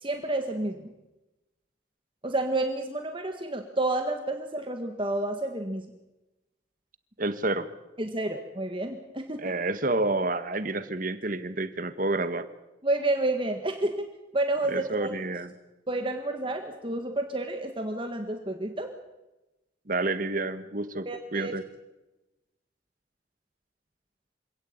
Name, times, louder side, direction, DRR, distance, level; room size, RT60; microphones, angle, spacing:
voice 1, 0.0-0.9 2.2-5.9 8.0-9.6 12.8-14.0 14.3-15.1 15.9-18.9 21.0-21.5, right 2 dB, 25° right, 5 dB, 1.7 m, -30 dB
voice 2, 7.2-7.7 9.4-12.5 14.7-15.5 19.9-21.7, right 2 dB, 45° right, 12 dB, 1.5 m, -29 dB
26.0 x 17.5 x 8.8 m, 1.0 s
head